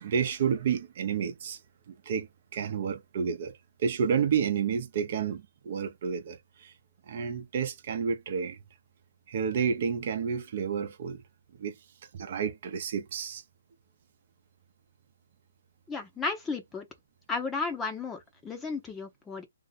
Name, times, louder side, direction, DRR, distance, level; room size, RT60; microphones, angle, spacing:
voice 1, 0.0-1.6 1.9-6.7 7.1-8.6 9.3-11.2 11.6-11.7 12.1-13.4, right 7 dB, 45° right, 0.8 m, -30 dB
voice 2, 15.9-16.9 17.3-19.4, left 4 dB, 10° left, 0.8 m, -34 dB
2.7 x 2.5 x 4.0 m
hypercardioid pair, 150°, 0 cm